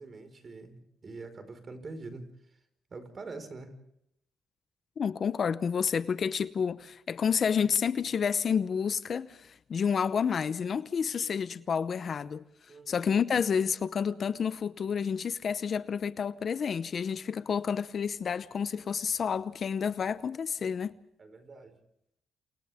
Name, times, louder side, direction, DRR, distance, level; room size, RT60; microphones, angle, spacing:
voice 1, 0.0-2.6 2.9-3.7 12.7-13.1 21.2-21.8, right 3 dB, 40° right, 5.0 m, -45 dB
voice 2, 5.0-12.4 12.9-20.9, left 6 dB, 50° left, 0.8 m, -30 dB
29.5 x 28.0 x 3.6 m
cardioid pair, 90°, 0 cm